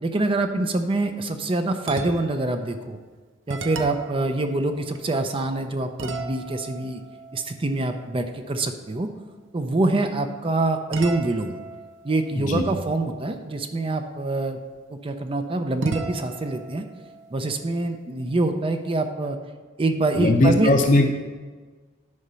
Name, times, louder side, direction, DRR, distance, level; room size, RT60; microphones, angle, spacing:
voice 1, 0.0-3.0 3.5-7.0 7.3-9.1 9.5-11.6 12.0-14.6 15.0-16.8 17.3-19.4 19.8-20.7, right 2 dB, 30° right, 7 dB, 0.5 m, -25 dB
sound 1, 1.8-2.5 3.0-3.1 3.5-5.5 6.0-8.6 10.9-13.6 15.8-18.4, right 3 dB, 70° right, 0.7 m, -38 dB
voice 2, 20.2-21.2, left 1 dB, 40° left, 2 dB, 0.7 m, -19 dB
9.7 x 5.0 x 5.6 m, 1.4 s
head